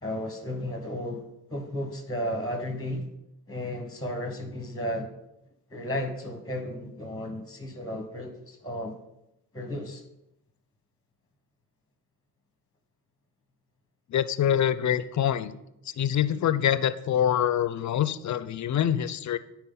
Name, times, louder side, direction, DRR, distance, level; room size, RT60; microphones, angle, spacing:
voice 1, 0.0-1.2 1.5-3.1 3.5-5.1 5.7-9.0 9.5-10.0, left 1 dB, 10° left, 1.1 m, -33 dB
voice 2, 14.1-15.5 16.0-19.4, left 10 dB, 50° left, 0.6 m, -25 dB
9.6 x 4.5 x 3.9 m
supercardioid pair, 60°, 38 cm